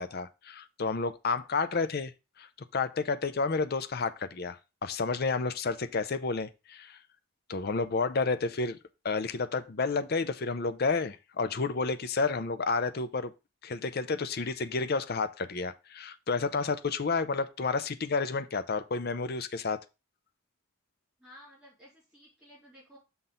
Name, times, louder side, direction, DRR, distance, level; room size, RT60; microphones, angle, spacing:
voice 1, 0.0-2.1 2.4-2.5 2.7-7.0 7.5-8.8 9.0-13.3 13.6-19.8, left 4 dB, 45° left, 0.5 m, -30 dB
voice 2, 21.2-23.0, equal, ahead, 3.7 m, -54 dB
5.9 x 3.9 x 5.5 m
head